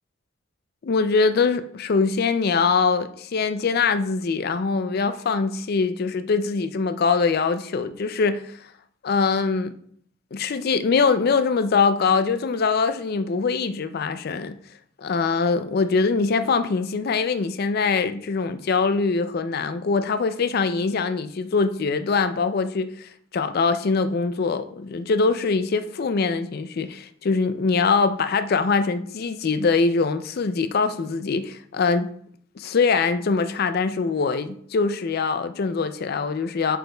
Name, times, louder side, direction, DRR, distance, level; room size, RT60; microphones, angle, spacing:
voice 1, 0.8-8.7 9.0-9.7 10.3-14.6 15.0-32.1 32.6-36.8, left 4 dB, 50° left, 0.4 m, -23 dB
7.9 x 6.0 x 2.3 m
head